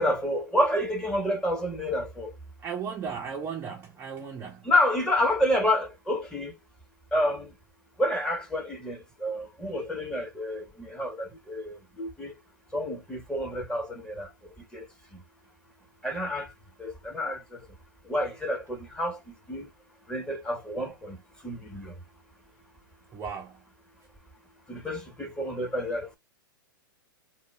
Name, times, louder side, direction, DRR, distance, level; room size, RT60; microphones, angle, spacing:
voice 1, 0.0-2.3 4.6-6.5 7.1-7.5 8.0-12.3 12.7-14.3 14.7-14.9 15.1-15.2 16.0-16.5 16.8-17.6 18.0-19.7 20.1-21.2 21.4-21.9 24.7-26.2, left 1 dB, 5° left, 0.9 m, -29 dB
voice 2, 2.6-4.7 11.3-11.4 23.1-23.6, right 6 dB, 20° right, 0.5 m, -36 dB
2.1 x 2.0 x 3.2 m
hypercardioid pair, 120°, 12 cm